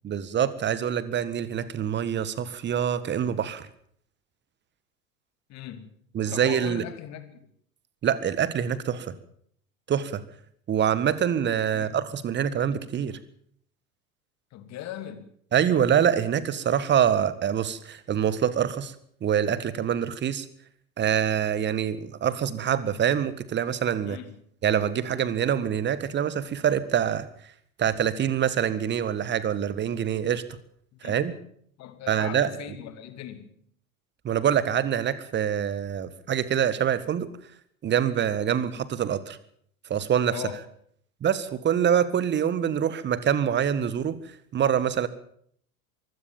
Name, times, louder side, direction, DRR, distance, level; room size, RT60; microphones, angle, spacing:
voice 1, 0.0-3.7 6.1-6.8 8.0-9.2 9.9-10.2 10.7-13.2 15.5-18.9 19.2-20.5 21.0-24.2 24.6-27.3 27.8-30.4 31.0-31.3 32.1-32.5 34.2-37.3 37.8-39.4 39.9-40.4 41.2-44.2 44.5-45.1, right 9 dB, 25° right, 16 dB, 1.7 m, -25 dB
voice 2, 5.5-5.9 6.3-7.5 11.7-12.0 14.5-15.3 24.0-24.4 31.0-31.3 31.8-33.5 40.3-40.6, left 11 dB, 40° left, 10 dB, 2.9 m, -39 dB
23.5 x 16.5 x 7.3 m, 0.64 s
figure-of-eight pair, 80°, 43 cm